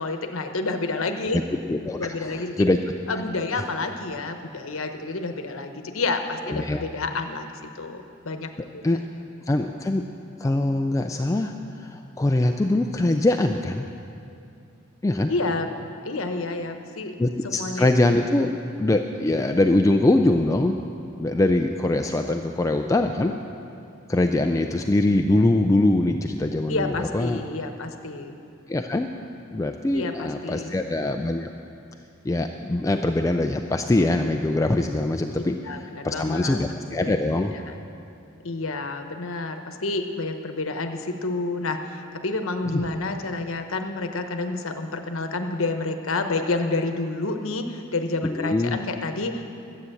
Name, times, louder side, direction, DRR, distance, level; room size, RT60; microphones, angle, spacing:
voice 1, 0.0-1.4 2.0-2.7 3.1-8.8 15.3-15.7 16.0-17.2 17.4-17.9 18.2-18.3 26.7-28.3 29.9-30.8 35.6-36.6 36.9-37.1 37.5-37.8 38.4-49.4, left 3 dB, 80° left, 6 dB, 1.0 m, -29 dB
voice 2, 1.7-2.9 3.5-3.7 6.5-6.8 8.8-9.0 9.5-10.1 10.4-13.9 15.0-15.3 17.2-18.5 18.8-20.8 21.2-23.4 24.1-27.4 28.7-29.1 29.5-31.5 32.2-35.6 36.0-37.6 48.2-48.8, left 2 dB, 15° left, 5 dB, 0.3 m, -23 dB
12.5 x 8.3 x 7.8 m, 2.7 s
head